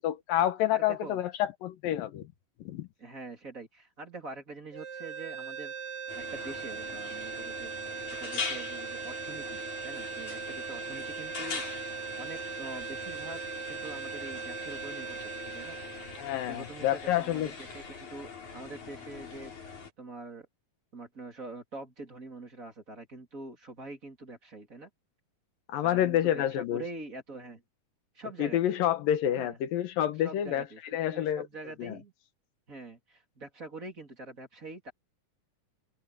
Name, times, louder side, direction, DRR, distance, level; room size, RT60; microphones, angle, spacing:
voice 1, 0.0-2.3 2.6-2.9 16.2-17.5 25.7-26.8 28.4-30.6 30.9-31.5 31.8-32.0, left 11 dB, 90° left, 3.0 m, -28 dB
voice 2, 0.7-1.2 3.0-5.7 6.1-7.7 8.2-11.6 12.2-13.4 13.7-15.2 15.4-15.8 16.5-20.5 20.9-24.9 25.8-27.6 28.1-28.6 29.3-29.6 30.2-32.1 32.7-34.9, right 2 dB, 25° right, 3.4 m, -44 dB
sound 1, 4.7-17.0, right 7 dB, 65° right, 1.5 m, -40 dB
sound 2, 6.1-19.9, left 5 dB, 60° left, 6.6 m, -42 dB
open air
omnidirectional pair, 3.9 m